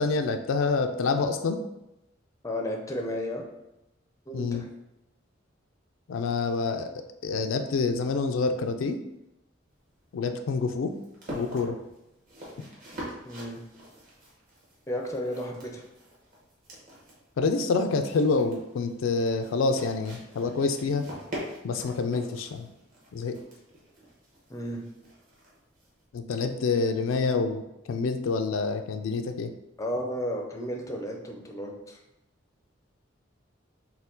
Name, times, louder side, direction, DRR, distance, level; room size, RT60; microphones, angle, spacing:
voice 1, 0.0-1.6 4.3-4.6 6.1-6.9 7.2-9.0 10.1-10.9 11.3-11.8 17.4-21.0 21.6-22.7 23.1-23.4 26.1-29.5, left 4 dB, 85° left, 7 dB, 0.4 m, -27 dB
voice 2, 2.4-3.4 4.3-4.7 13.2-13.6 14.9-15.8 24.5-24.8 29.8-32.0, equal, 15° left, 1 dB, 0.4 m, -33 dB
sound 1, 9.7-26.0, equal, 45° right, 1.2 m, -45 dB
4.3 x 2.2 x 3.8 m, 0.90 s
head